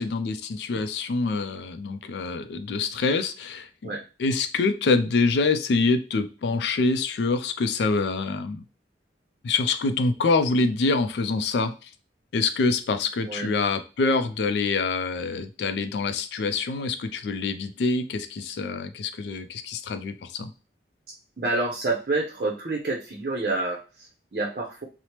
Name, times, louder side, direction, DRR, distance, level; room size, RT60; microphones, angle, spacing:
voice 1, 0.0-3.9 4.2-8.6 9.4-11.9 12.3-20.5, left 3 dB, 75° left, 10 dB, 0.3 m, -25 dB
voice 2, 21.4-24.8, right 2 dB, 55° right, -1 dB, 0.6 m, -28 dB
3.1 x 2.0 x 2.8 m, 0.32 s
head